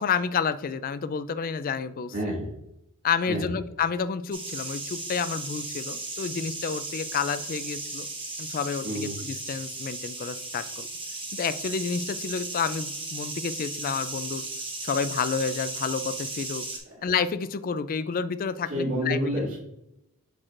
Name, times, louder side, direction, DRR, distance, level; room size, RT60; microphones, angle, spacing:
voice 1, 0.0-2.1 3.0-8.1 8.4-10.9 11.3-14.5 14.8-16.7 17.0-19.2, left 6 dB, 40° left, 14 dB, 0.3 m, -30 dB
voice 2, 2.1-2.5 3.3-3.4 8.8-9.1 18.7-19.6, equal, 65° right, -6 dB, 2.2 m, -28 dB
sound 1, 4.3-16.8, right 2 dB, 20° right, 1.1 m, -36 dB
8.4 x 4.7 x 2.5 m, 0.83 s
head